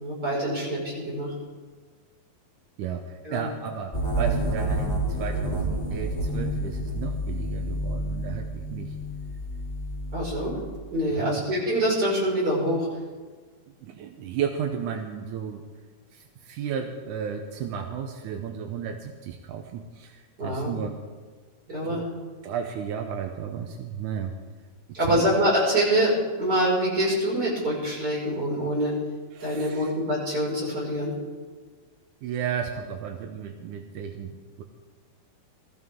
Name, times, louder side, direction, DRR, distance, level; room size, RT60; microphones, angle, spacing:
voice 1, 0.0-1.3 3.2-3.5 10.1-10.6 10.9-12.9 20.4-20.7 21.7-22.1 24.9-26.1 26.4-28.9 29.4-31.1, equal, 25° right, -5 dB, 6.0 m, -25 dB
voice 2, 2.8-9.0 11.1-11.4 13.8-15.6 16.1-20.9 21.8-22.0 22.4-24.3 25.0-25.3 29.3-29.9 32.2-34.6, right 7 dB, 75° right, 4 dB, 1.9 m, -33 dB
sound 1, 3.9-10.7, right 1 dB, 15° left, 3.1 m, -29 dB
22.5 x 14.0 x 3.7 m, 1.4 s
omnidirectional pair, 4.5 m